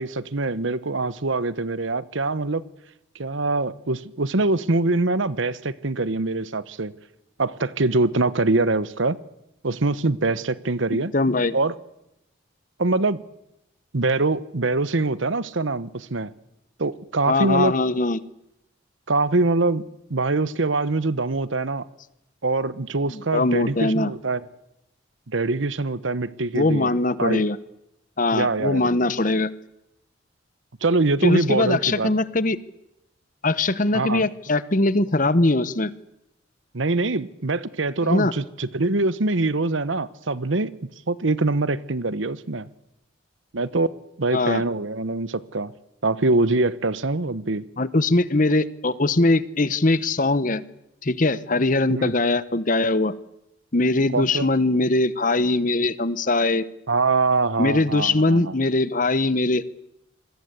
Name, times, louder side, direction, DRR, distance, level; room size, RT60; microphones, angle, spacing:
voice 1, 0.0-2.6 3.1-6.9 7.4-9.2 9.6-11.1 11.5-11.7 12.8-13.2 13.9-16.3 16.8-17.7 19.1-19.8 20.1-21.8 22.4-24.4 25.3-26.9 27.2-27.4 28.3-28.9 30.8-32.1 33.9-34.3 36.7-40.7 41.1-42.7 43.5-43.9 44.2-45.7 46.0-47.6 51.9-52.1 54.1-54.5 56.9-58.6, right 3 dB, 75° right, 1.0 m, -23 dB
voice 2, 10.9-11.6 17.3-18.2 23.1-24.1 26.5-27.6 28.2-29.5 31.2-32.6 33.4-35.9 38.0-38.3 44.3-44.6 47.8-50.6 51.0-53.1 53.7-56.7 57.6-59.6, left 2 dB, 40° left, 1.0 m, -21 dB
27.0 x 21.5 x 8.2 m
head